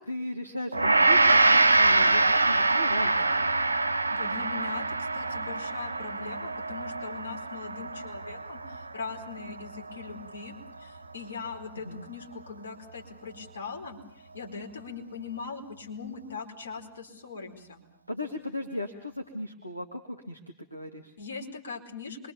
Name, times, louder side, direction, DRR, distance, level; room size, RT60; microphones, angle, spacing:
voice 1, 0.1-3.5 11.7-12.0 18.1-20.4 20.7-21.1, left 1 dB, 90° left, 4 dB, 1.7 m, -37 dB
Gong, 0.7-10.1, right 2 dB, 80° right, 1.0 m, -24 dB
voice 2, 4.1-17.8 21.2-22.3, left 5 dB, 70° left, 2 dB, 4.6 m, -41 dB
27.0 x 23.5 x 7.1 m, 0.64 s
figure-of-eight pair, 90°, 0 cm